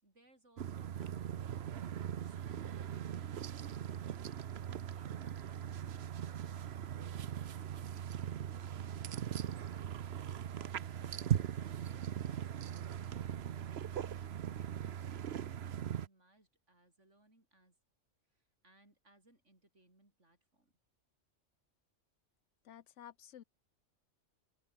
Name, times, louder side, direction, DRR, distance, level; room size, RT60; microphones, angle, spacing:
voice 1, 0.0-1.6 10.5-12.1 12.3-17.8 18.3-20.7, right 1 dB, 80° right, 7.1 m, -68 dB
sound 1, 0.6-16.1, right 9 dB, 60° right, 1.0 m, -40 dB
voice 2, 22.6-23.4, left 10 dB, 85° left, 1.1 m, -53 dB
open air
omnidirectional pair, 1.2 m